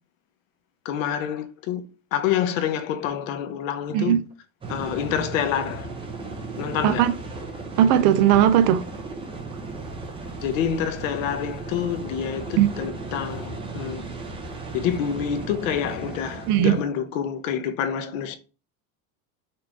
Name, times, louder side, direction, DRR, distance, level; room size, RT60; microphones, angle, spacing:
voice 1, 0.8-1.8 2.1-4.2 4.7-5.9 6.6-7.1 10.4-14.0 14.7-18.4, left 9 dB, 85° left, 0.9 m, -27 dB
sound 1, 4.6-16.8, right 3 dB, 15° right, 0.8 m, -36 dB
voice 2, 7.8-8.8 12.6-12.7 16.5-16.8, right 10 dB, 55° right, 0.6 m, -18 dB
5.5 x 2.6 x 3.4 m
supercardioid pair, 150°, 38 cm